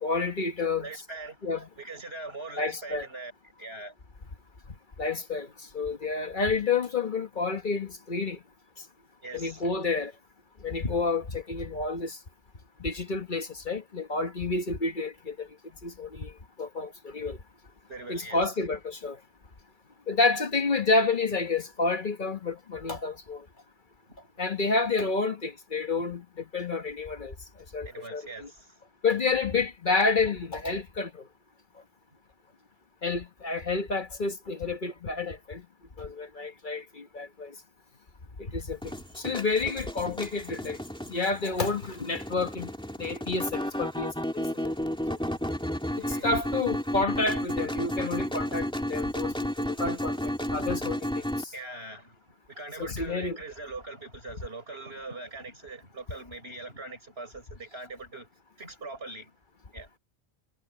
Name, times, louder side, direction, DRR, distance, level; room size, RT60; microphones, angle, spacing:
voice 1, 0.0-0.9 1.4-1.7 2.6-3.1 5.0-5.5 5.7-8.4 9.3-10.1 10.6-12.2 12.8-15.5 15.8-16.3 16.6-17.4 18.1-19.2 20.1-23.4 24.4-27.3 27.7-28.5 29.0-31.2 33.0-35.6 36.0-37.5 38.4-40.8 41.1-42.7 43.0-44.7 45.1-45.2 46.0-51.5 52.8-53.4, left 3 dB, 50° left, 1.4 m, -29 dB
voice 2, 0.8-1.4 1.8-3.3 3.6-4.0 9.2-9.6 17.9-18.6 24.1-24.2 27.8-28.8 40.4-40.7 45.9-46.3 50.5-50.8 51.5-58.3 58.6-59.3 59.7-59.9, right 2 dB, 65° right, 6.8 m, -42 dB
sound 1, 38.8-51.4, equal, 5° left, 2.5 m, -32 dB
omnidirectional pair, 1.1 m